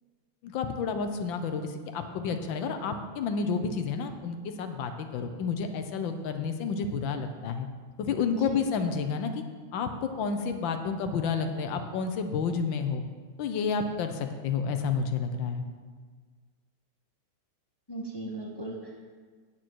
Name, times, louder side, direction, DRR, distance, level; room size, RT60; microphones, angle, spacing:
voice 1, 0.4-7.7 8.0-9.3 9.7-13.0 13.4-15.6, left 5 dB, 75° left, 7 dB, 1.5 m, -30 dB
voice 2, 17.9-19.1, right 2 dB, 25° left, -1 dB, 0.5 m, -38 dB
8.8 x 8.8 x 4.5 m, 1.5 s
omnidirectional pair, 2.2 m